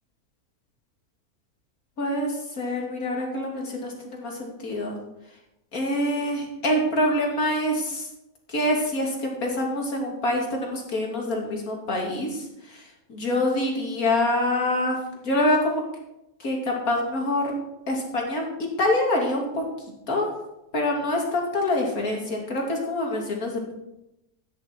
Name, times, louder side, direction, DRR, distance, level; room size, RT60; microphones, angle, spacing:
voice 1, 2.0-4.9 5.7-8.1 8.5-15.0 15.2-15.8 16.4-17.5 17.9-19.7 20.1-20.3 20.7-23.7, left 1 dB, 80° left, 0 dB, 3.0 m, -26 dB
13.0 x 9.9 x 4.5 m, 0.91 s
omnidirectional pair, 1.5 m